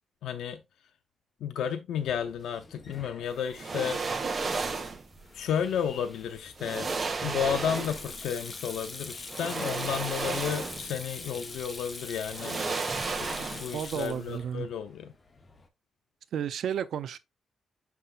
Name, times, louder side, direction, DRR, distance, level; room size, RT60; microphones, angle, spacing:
voice 1, 0.2-0.6 1.4-4.2 5.3-6.9 7.2-12.9 13.2-15.1, left 8 dB, 90° left, 0.5 m, -32 dB
Sink (filling or washing), 2.0-15.7, left 3 dB, 30° left, 1.0 m, -45 dB
sound 1, 3.5-5.1 6.1-6.2 6.6-8.2 9.3-11.0 11.3-11.5 12.3-13.9 14.1-14.3, right 4 dB, 35° right, 1.4 m, -33 dB
voice 2, 13.7-14.7 16.3-17.2, right 9 dB, 75° right, 0.6 m, -32 dB
6.6 x 5.9 x 2.4 m
cardioid pair, 110°, 0 cm